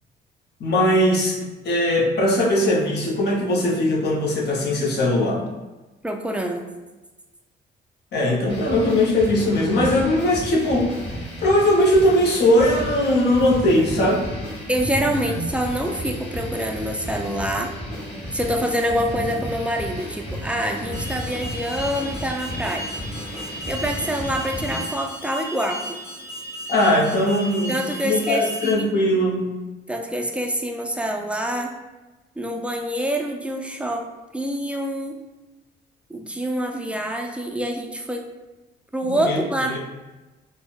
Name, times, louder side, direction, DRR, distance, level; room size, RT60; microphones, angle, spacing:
voice 1, 0.6-1.4 1.6-5.4 8.1-10.9 11.4-14.2 26.7-29.6 39.0-39.4 39.7-39.8, left 1 dB, 55° left, -2 dB, 0.7 m, -20 dB
voice 2, 6.0-6.6 14.7-17.7 18.3-22.9 23.7-26.0 27.7-29.0 29.9-31.8 32.4-34.1 34.3-35.2 36.1-38.3 38.9-39.8, equal, 5° right, 2 dB, 0.3 m, -26 dB
sound 1, 8.5-24.9, equal, 30° left, 1.3 m, -33 dB
Alarm, 20.9-28.7, right 1 dB, 10° left, 1.1 m, -35 dB
3.8 x 2.1 x 2.3 m, 1.1 s
cardioid pair, 90°, 20 cm